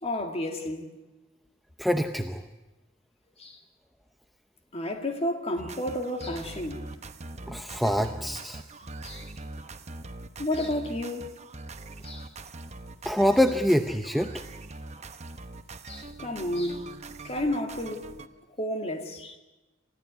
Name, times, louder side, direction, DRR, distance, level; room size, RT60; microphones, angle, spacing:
voice 1, 0.0-0.9 3.4-3.6 4.7-6.9 9.0-9.3 10.4-11.3 12.0-12.3 15.9-16.9 17.2-18.1 18.6-19.4, left 1 dB, 30° left, 2.2 m, -31 dB
voice 2, 1.8-2.4 7.5-8.6 13.0-14.3, equal, ahead, 0.7 m, -25 dB
sound 1, 5.6-18.3, right 2 dB, 35° right, 0.9 m, -42 dB
28.5 x 14.0 x 9.4 m
head